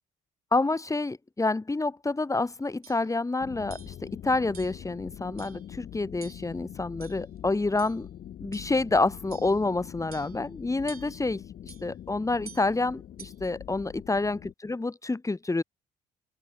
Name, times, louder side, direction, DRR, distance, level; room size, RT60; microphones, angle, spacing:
voice 1, 0.5-8.1 8.4-15.6, left 3 dB, 15° left, 2.6 m, -28 dB
sound 1, 2.3-2.5 2.8-3.1 3.7-4.0 4.5-4.8 5.4-5.7 6.2-6.6 7.0-7.4 7.8-8.0 8.5-8.8 9.3-9.6 10.1-10.5 10.9-11.3 11.7-11.9 12.4-12.7 13.2-13.5, right 7 dB, 85° right, 4.4 m, -49 dB
sound 2, 3.4-14.5, left 10 dB, 55° left, 7.0 m, -44 dB
open air
figure-of-eight pair, 45°, 19 cm